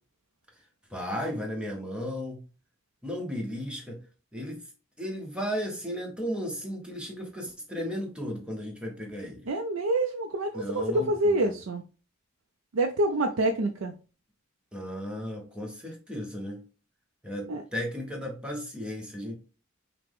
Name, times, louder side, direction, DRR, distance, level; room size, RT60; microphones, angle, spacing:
voice 1, 0.9-2.4 3.0-4.0 4.3-4.7 5.0-9.5 10.5-11.5 14.7-16.6 17.2-19.3, equal, 5° right, 0.9 m, -35 dB
voice 2, 9.5-11.8 12.7-13.9 17.5-17.6, right 1 dB, 90° right, 0.5 m, -27 dB
5.7 x 2.1 x 3.4 m
head